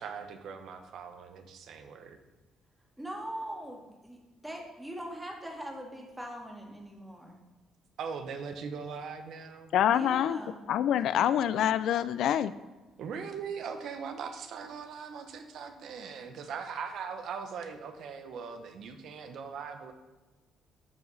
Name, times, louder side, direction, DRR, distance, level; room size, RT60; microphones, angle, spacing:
voice 1, 0.0-2.2 8.0-9.7 13.0-19.9, right 6 dB, 65° right, 7 dB, 0.9 m, -40 dB
voice 2, 3.0-7.4 9.9-10.6, right 1 dB, 5° right, 0 dB, 1.6 m, -41 dB
voice 3, 9.7-10.4 10.7-12.5, left 10 dB, 70° left, 14 dB, 0.3 m, -26 dB
11.0 x 4.8 x 4.0 m, 1.2 s
cardioid pair, 120°, 0 cm